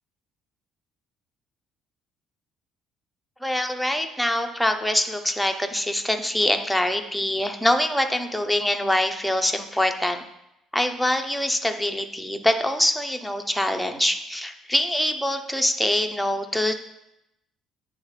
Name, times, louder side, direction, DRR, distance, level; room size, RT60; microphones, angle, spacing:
voice 1, 3.4-10.2 10.7-16.7, left 1 dB, ahead, 5 dB, 0.4 m, -24 dB
8.7 x 3.4 x 3.2 m, 0.85 s
cardioid pair, 160°, 0 cm